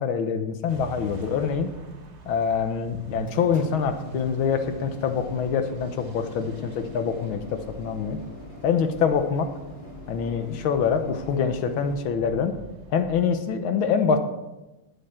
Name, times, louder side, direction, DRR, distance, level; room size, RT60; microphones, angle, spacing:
voice 1, 0.0-1.7 2.3-8.2 8.6-9.5 10.1-12.5 12.9-14.2, left 6 dB, 80° left, 8 dB, 1.8 m, -25 dB
sound 1, 0.7-13.3, right 4 dB, 45° right, 1.1 m, -44 dB
sound 2, 3.0-12.0, left 2 dB, 45° left, 3.6 m, -44 dB
13.0 x 9.0 x 4.4 m, 1.0 s
omnidirectional pair, 2.2 m